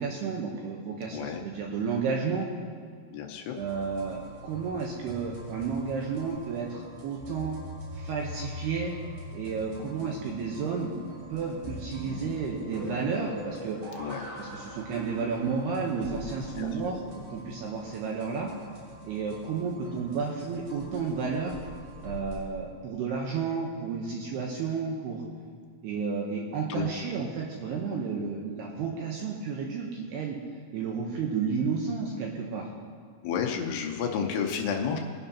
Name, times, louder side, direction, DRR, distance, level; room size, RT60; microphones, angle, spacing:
voice 1, 0.0-2.5 3.6-7.6 7.9-8.9 9.3-10.9 11.3-13.8 14.4-18.5 19.0-21.6 22.0-25.2 25.8-30.4 30.7-32.7, right 5 dB, 75° right, -1 dB, 2.4 m, -32 dB
voice 2, 1.1-1.4 3.1-3.6 14.0-14.3 16.6-16.9 26.7-26.9 33.2-35.0, left 7 dB, 85° left, 2 dB, 2.4 m, -31 dB
sound 1, 3.6-22.4, left 1 dB, 45° right, 3.8 m, -43 dB
21.5 x 10.5 x 2.9 m, 2.1 s
omnidirectional pair, 5.8 m